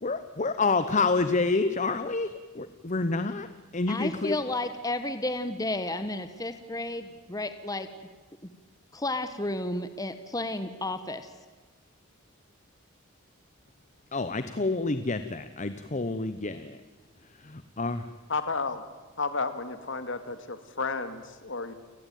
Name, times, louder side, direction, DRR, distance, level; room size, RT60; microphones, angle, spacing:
voice 1, 0.0-4.4 14.1-16.8 17.4-18.0, left 3 dB, 35° left, 12 dB, 0.9 m, -28 dB
voice 2, 3.9-7.9 8.9-11.3, left 2 dB, 15° left, 10 dB, 1.1 m, -32 dB
voice 3, 18.3-18.8 19.2-21.7, left 4 dB, 60° left, 11 dB, 2.2 m, -32 dB
29.5 x 18.5 x 9.2 m, 1.3 s
head